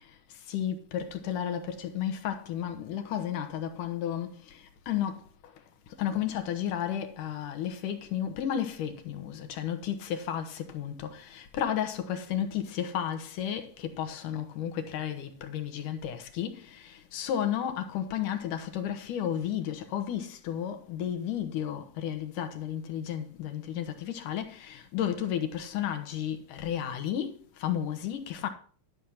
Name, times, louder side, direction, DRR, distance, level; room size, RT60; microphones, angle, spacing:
voice 1, 0.0-28.5, left 9 dB, 75° left, 2.7 m, -33 dB
12.0 x 6.4 x 5.7 m
omnidirectional pair, 3.8 m